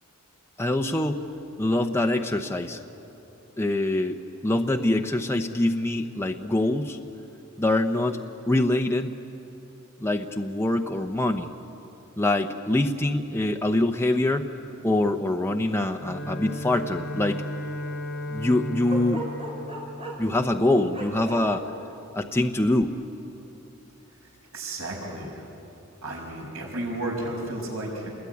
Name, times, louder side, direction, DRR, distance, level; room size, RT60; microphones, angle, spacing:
voice 1, 0.6-1.3 1.6-2.8 3.6-7.0 7.6-9.1 10.0-11.5 12.2-14.5 14.8-17.4 18.3-19.3 20.2-21.7 22.1-23.0, left 1 dB, 10° left, 4 dB, 0.8 m, -24 dB
Bowed string instrument, 16.0-21.0, equal, 55° left, 6.3 m, -35 dB
Bark, 18.9-20.3 20.9-21.4, right 2 dB, 30° right, 5.5 m, -35 dB
voice 2, 24.1-25.5 26.0-28.1, right 1 dB, 80° right, 0 dB, 5.8 m, -33 dB
29.0 x 21.5 x 9.5 m, 2.9 s
head